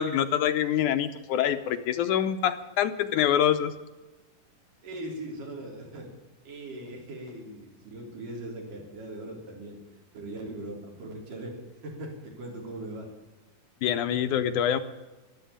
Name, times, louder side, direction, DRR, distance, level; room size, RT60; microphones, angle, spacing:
voice 1, 0.0-3.7 13.8-14.8, left 10 dB, 80° left, 9 dB, 2.2 m, -25 dB
voice 2, 4.8-6.1 6.4-9.8 10.1-11.6 11.8-13.1, right 1 dB, 80° right, 0 dB, 5.1 m, -40 dB
13.0 x 12.0 x 8.5 m, 1.1 s
omnidirectional pair, 3.7 m